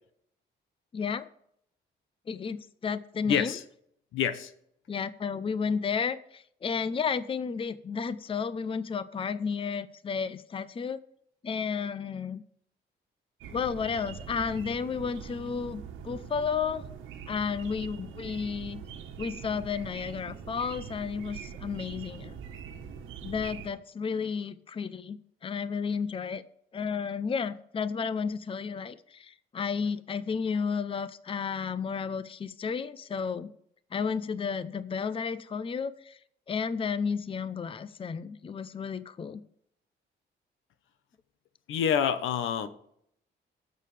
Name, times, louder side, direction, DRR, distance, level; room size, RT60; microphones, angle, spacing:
voice 1, 0.9-1.3 2.3-3.5 4.9-11.0 11.4-12.4 13.5-16.8 17.3-18.8 19.2-22.4 23.2-26.4 26.7-33.5 33.9-36.2 36.5-39.4, left 6 dB, 25° left, 15 dB, 0.6 m, -32 dB
voice 2, 3.3-3.6 4.1-4.5 41.7-42.7, left 8 dB, 85° left, 12 dB, 1.0 m, -27 dB
sound 1, 13.4-23.7, right 7 dB, 85° right, 1.3 m, -43 dB
17.5 x 6.7 x 3.3 m, 0.71 s
cardioid pair, 90°, 20 cm